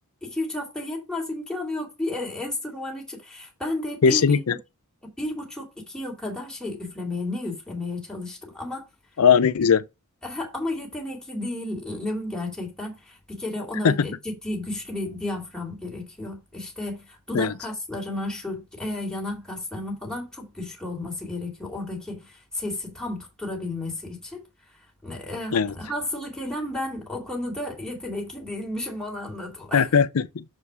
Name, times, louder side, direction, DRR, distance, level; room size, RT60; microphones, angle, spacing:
voice 1, 0.2-4.6 5.0-8.9 10.2-24.5 25.0-29.9, left 1 dB, 5° left, 2.4 m, -32 dB
voice 2, 4.0-4.5 9.2-9.8 13.8-13.9 17.3-17.5 25.5-25.7 29.7-30.4, left 6 dB, 75° left, 0.5 m, -19 dB
7.0 x 4.7 x 4.8 m
head